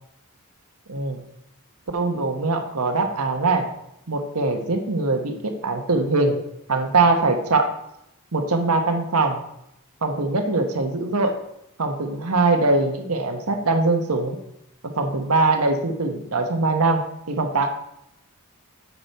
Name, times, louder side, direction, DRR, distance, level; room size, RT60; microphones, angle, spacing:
voice 1, 0.9-1.2 1.9-3.7 4.1-6.4 6.7-7.7 8.3-9.4 10.0-11.4 11.8-14.4 14.8-17.7, right 3 dB, 80° right, 5 dB, 1.3 m, -22 dB
8.8 x 6.3 x 4.4 m, 0.80 s
head